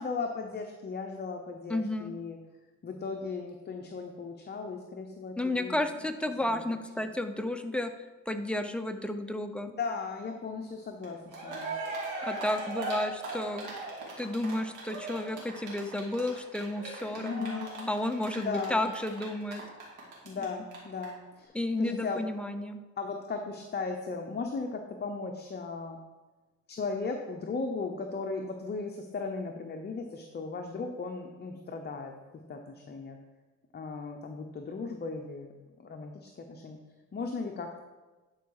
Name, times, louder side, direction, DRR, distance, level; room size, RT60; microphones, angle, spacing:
voice 1, 0.0-2.4 2.8-5.8 6.4-6.6 7.0-7.1 9.8-11.7 17.1-17.9 18.4-18.8 20.2-21.5 21.8-22.2 23.0-26.0 26.7-32.1 32.5-33.2 33.7-35.5 35.8-36.8 37.1-37.8, left 4 dB, 35° left, 3 dB, 0.8 m, -36 dB
voice 2, 1.7-2.1 5.4-7.9 8.3-9.7 12.2-13.7 14.2-19.6 21.5-22.8, left 1 dB, 5° left, 6 dB, 0.7 m, -32 dB
Cheering, 11.0-11.1 11.3-20.4 20.7-20.8 21.0-21.1, right 2 dB, 85° right, 2.7 m, -38 dB
11.0 x 4.7 x 4.8 m, 1.2 s
cardioid pair, 90°, 30 cm